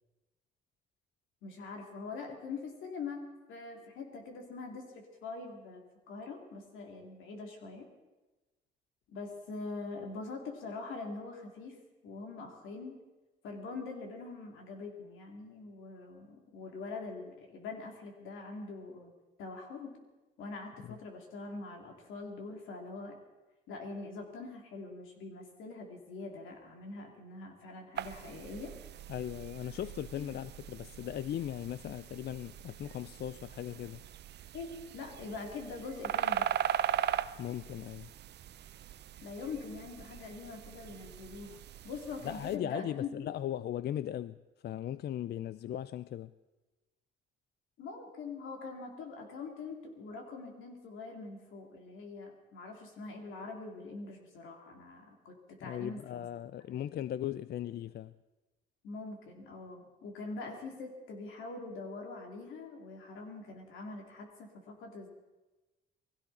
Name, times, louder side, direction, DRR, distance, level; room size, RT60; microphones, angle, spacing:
voice 1, 1.4-7.9 9.1-11.8 12.0-13.0 13.4-19.1 19.4-20.0 20.4-23.1 23.7-28.7 30.2-30.3 34.5-36.5 39.2-41.6 41.8-43.1 47.8-56.2 56.7-56.8 58.8-65.1, left 3 dB, 85° left, 3.1 m, -43 dB
sound 1, 28.0-42.6, right 10 dB, 60° right, 0.6 m, -39 dB
voice 2, 29.1-34.0 37.4-38.1 42.2-44.4 44.6-46.3 55.6-58.1, left 11 dB, 55° left, 0.4 m, -38 dB
20.5 x 16.0 x 4.3 m
cardioid pair, 90°, 20 cm